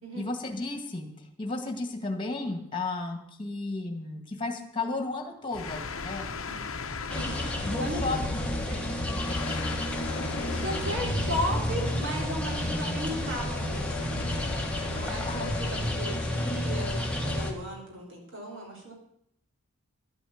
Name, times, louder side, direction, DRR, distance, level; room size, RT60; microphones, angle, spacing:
voice 1, 0.2-6.3 7.6-9.8 15.2-15.5, left 3 dB, 20° left, 4 dB, 1.8 m, -34 dB
sound 1, 5.5-16.0, left 3 dB, 65° left, 0.9 m, -37 dB
voice 2, 6.3-6.6 7.1-8.2 10.5-14.2 14.9-18.9, equal, 55° right, -1 dB, 3.5 m, -36 dB
sound 2, 7.1-17.5, left 1 dB, 5° left, 1.3 m, -31 dB
11.5 x 8.7 x 7.1 m, 0.72 s
head